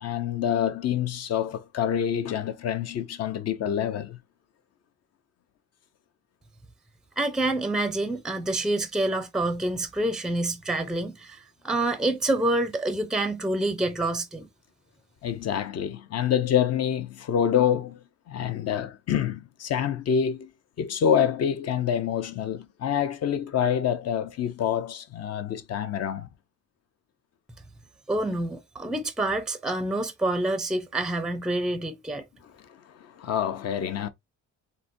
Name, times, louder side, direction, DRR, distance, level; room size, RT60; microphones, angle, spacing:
voice 1, 0.0-4.2 15.2-20.5 20.8-26.3 32.6-34.1, left 9 dB, 55° left, 0.6 m, -27 dB
voice 2, 7.2-14.5 28.1-32.2, right 2 dB, ahead, 0.5 m, -27 dB
3.9 x 2.2 x 2.5 m
cardioid pair, 90°, 30 cm